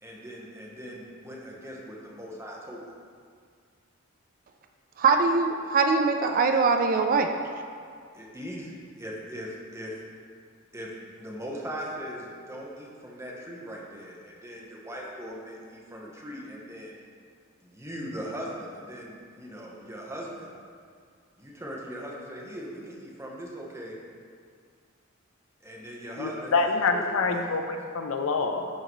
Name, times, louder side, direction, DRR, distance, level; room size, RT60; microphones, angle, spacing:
voice 1, 0.0-2.8 8.1-9.9 10.7-17.0 17.6-20.6 21.4-24.0 25.6-27.4, equal, 15° right, -3 dB, 0.9 m, -39 dB
voice 2, 5.0-7.3, right 4 dB, 40° right, 5 dB, 0.3 m, -22 dB
voice 3, 26.2-28.7, left 4 dB, 70° left, 5 dB, 0.5 m, -26 dB
11.0 x 3.8 x 3.0 m, 2.1 s
head